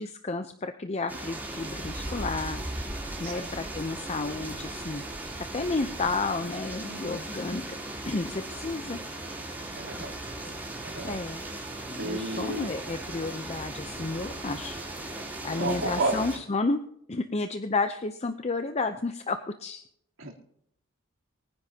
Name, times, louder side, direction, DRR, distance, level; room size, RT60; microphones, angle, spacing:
voice 1, 0.0-2.6 3.2-5.0 5.5-7.8 8.0-9.0 11.0-11.4 11.9-14.8 15.4-16.8 17.1-19.8, left 3 dB, 30° left, 8 dB, 0.6 m, -31 dB
sound 1, 1.1-16.4, right 1 dB, 10° right, 3.3 m, -37 dB
voice 2, 6.8-7.2 9.8-10.1 10.8-11.5 12.0-12.7 15.6-16.2 20.2-20.3, right 2 dB, 75° right, -1 dB, 3.4 m, -32 dB
24.0 x 10.0 x 2.8 m, 0.71 s
head